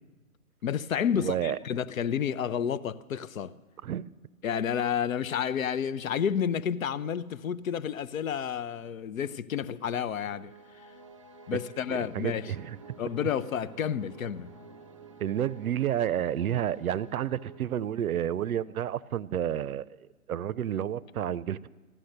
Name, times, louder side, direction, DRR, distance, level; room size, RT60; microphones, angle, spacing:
voice 1, 0.6-3.5 4.4-10.5 10.8-10.9 11.5-12.5 13.0-14.5, left 8 dB, 65° left, 0.7 m, -30 dB
voice 2, 1.1-1.6 3.8-4.1 11.9-12.8 15.2-19.9 20.3-21.7, right 10 dB, 70° right, 0.6 m, -30 dB
sound 1, 10.0-18.4, right 4 dB, 25° right, 0.4 m, -51 dB
15.0 x 12.0 x 6.6 m
hypercardioid pair, 140°, 44 cm